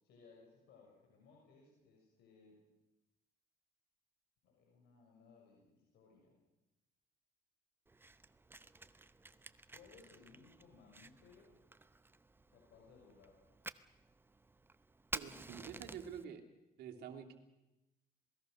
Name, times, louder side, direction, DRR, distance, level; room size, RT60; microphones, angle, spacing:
voice 1, 0.0-2.7 4.4-6.4 9.7-11.6 12.5-13.4, left 4 dB, 75° left, -1 dB, 6.4 m, -63 dB
Fire, 7.9-16.2, right 3 dB, 15° right, 0.8 m, -51 dB
voice 2, 15.1-16.4 16.8-17.3, right 8 dB, 75° right, 4 dB, 3.0 m, -48 dB
27.0 x 20.0 x 6.6 m, 0.97 s
cardioid pair, 110°, 17 cm